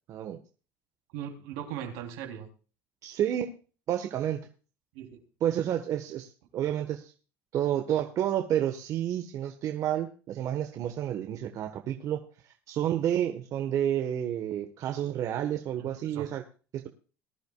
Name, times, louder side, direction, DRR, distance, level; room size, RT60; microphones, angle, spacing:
voice 1, 0.1-0.4 3.0-3.5 3.9-4.4 5.4-7.1 7.5-16.4 16.7-16.9, right 10 dB, 55° right, 5 dB, 1.4 m, -30 dB
voice 2, 1.1-2.5 4.9-5.2 15.8-16.3, right 9 dB, 85° right, 3 dB, 3.5 m, -39 dB
20.0 x 10.5 x 2.4 m, 0.37 s
supercardioid pair, 110°, 7 cm